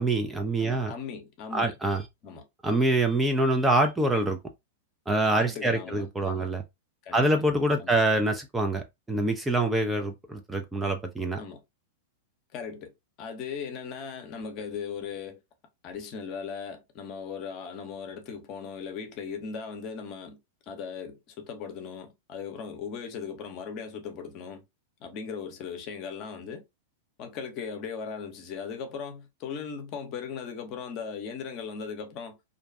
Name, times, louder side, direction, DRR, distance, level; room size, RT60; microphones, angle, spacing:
voice 1, 0.0-0.9 1.5-2.0 2.6-4.4 5.1-6.6 7.1-11.4, right 2 dB, 10° right, 0.4 m, -25 dB
voice 2, 0.6-1.7 2.2-2.4 5.3-6.5 7.0-7.4 7.8-8.0 11.4-11.6 12.5-15.4 15.8-20.4 20.7-24.6 25.0-26.6 27.2-32.4, left 6 dB, 40° left, 0.7 m, -38 dB
2.5 x 2.2 x 2.5 m
figure-of-eight pair, 95°, 0 cm